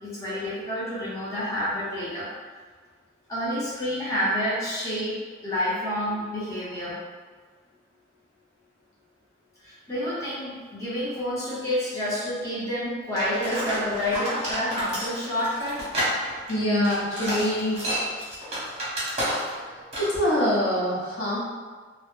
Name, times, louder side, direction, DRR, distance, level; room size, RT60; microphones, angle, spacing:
voice 1, 0.0-2.3 3.3-7.0 9.6-15.9 18.6-18.7 19.4-19.9, equal, 15° left, -10 dB, 0.6 m, -29 dB
sound 1, 13.2-19.7 19.9-20.2, equal, 35° right, 0.8 m, -30 dB
voice 2, 16.5-17.9 19.7-21.4, equal, 85° left, -7 dB, 0.7 m, -25 dB
2.0 x 2.0 x 3.0 m, 1.5 s
head